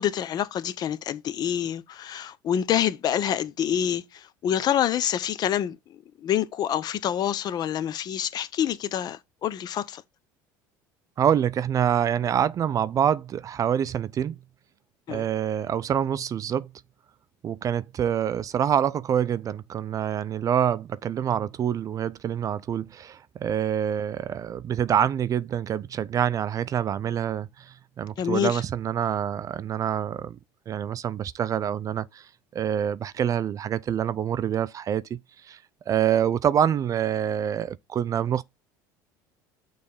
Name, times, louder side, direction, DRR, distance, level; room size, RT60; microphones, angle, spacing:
voice 1, 0.0-5.8 6.2-10.0 15.1-15.2 28.2-28.6, left 10 dB, 50° left, 0.8 m, -27 dB
voice 2, 11.2-14.4 15.1-16.7 17.4-30.4 30.7-35.2 35.4-35.6 35.9-38.4, right 9 dB, 40° right, 0.5 m, -26 dB
6.5 x 3.4 x 5.5 m
supercardioid pair, 95°, 9 cm